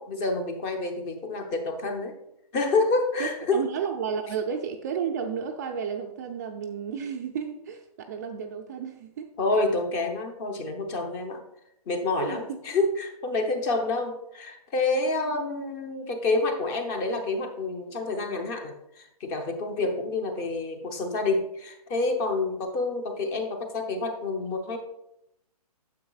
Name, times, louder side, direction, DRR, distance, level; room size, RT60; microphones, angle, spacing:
voice 1, 0.0-2.2 2.5-3.6 9.4-11.4 11.9-24.8, left 3 dB, 20° left, 5 dB, 0.8 m, -28 dB
voice 2, 3.2-9.3 12.2-12.6 15.3-15.4, right 7 dB, 25° right, 4 dB, 0.4 m, -32 dB
9.3 x 7.2 x 2.3 m, 0.81 s
hypercardioid pair, 150°, 20 cm